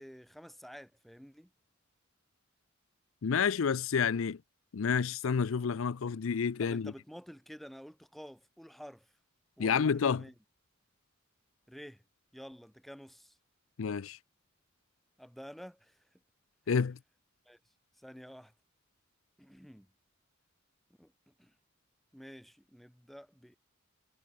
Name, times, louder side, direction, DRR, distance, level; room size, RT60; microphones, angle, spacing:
voice 1, 0.0-1.5 6.6-9.1 9.6-10.3 11.7-12.0 12.3-13.4 15.2-16.0 17.4-17.6 18.0-18.5 19.4-19.9 21.0-21.5 22.1-23.6, equal, ahead, 1.6 m, -50 dB
voice 2, 3.2-4.4 4.7-6.9 9.6-10.2 13.8-14.2 16.7-17.0, left 6 dB, 70° left, 0.5 m, -29 dB
head